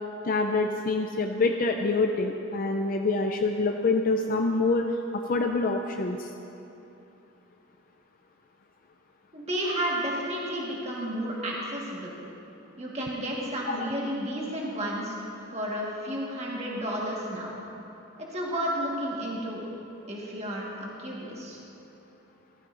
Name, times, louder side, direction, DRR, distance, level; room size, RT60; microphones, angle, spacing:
voice 1, 0.2-6.3 13.7-13.9, left 3 dB, 40° left, 3 dB, 0.5 m, -26 dB
voice 2, 9.3-12.2 12.8-17.5 18.3-19.6 20.1-21.6, equal, 30° right, -4 dB, 1.5 m, -32 dB
15.5 x 14.5 x 2.6 m, 2.9 s
head